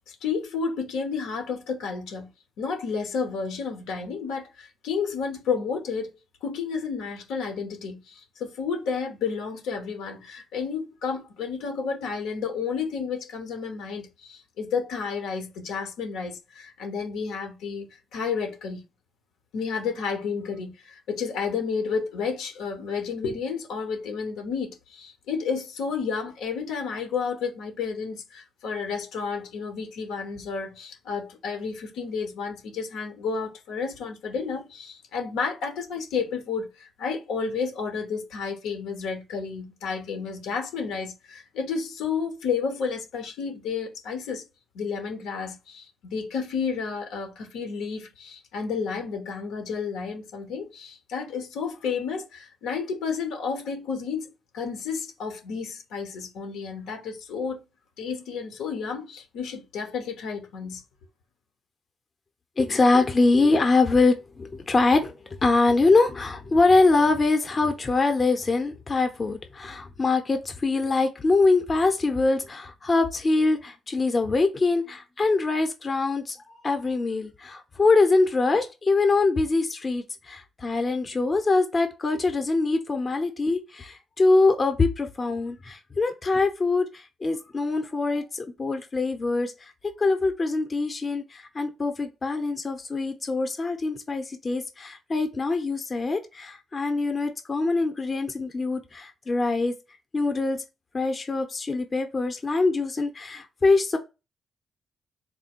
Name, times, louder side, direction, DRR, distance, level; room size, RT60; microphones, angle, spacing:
voice 1, 0.1-2.3 2.6-6.1 6.4-17.9 18.1-18.8 19.5-44.4 44.7-57.6 58.0-60.8, left 5 dB, 90° left, 1.0 m, -31 dB
voice 2, 62.6-65.1 65.4-89.7 90.0-99.8 100.1-100.6 100.9-104.0, left 3 dB, 40° left, 0.8 m, -23 dB
3.5 x 2.2 x 4.3 m
supercardioid pair, 65°, 0 cm